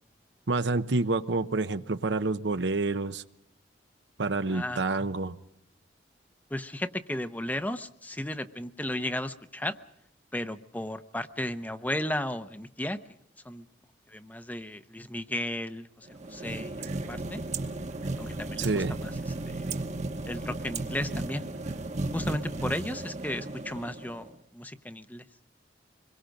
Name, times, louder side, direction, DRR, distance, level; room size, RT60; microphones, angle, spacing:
voice 1, 0.5-3.2 4.2-5.3 18.6-19.0, right 3 dB, 80° right, 0.8 m, -28 dB
voice 2, 4.5-4.8 6.5-9.8 10.3-13.0 13.4-13.6 14.1-17.4 18.2-19.1 19.4-19.6 20.3-21.5 22.1-25.2, left 1 dB, 10° left, 0.7 m, -35 dB
sound 1, 16.1-24.3, right 2 dB, 40° right, 1.1 m, -35 dB
25.5 x 22.0 x 5.2 m
head